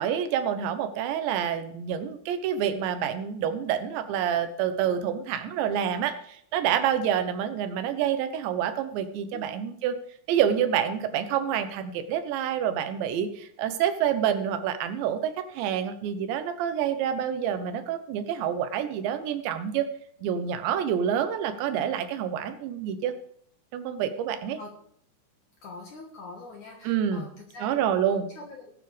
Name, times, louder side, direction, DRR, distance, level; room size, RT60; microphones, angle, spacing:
voice 1, 0.0-9.9 10.3-19.9 20.2-23.1 23.7-24.6 26.8-27.3 27.6-28.3, right 9 dB, 80° right, 9 dB, 3.1 m, -27 dB
voice 2, 25.6-28.7, left 3 dB, 60° left, 1 dB, 2.2 m, -44 dB
19.5 x 9.0 x 3.4 m, 0.65 s
omnidirectional pair, 5.2 m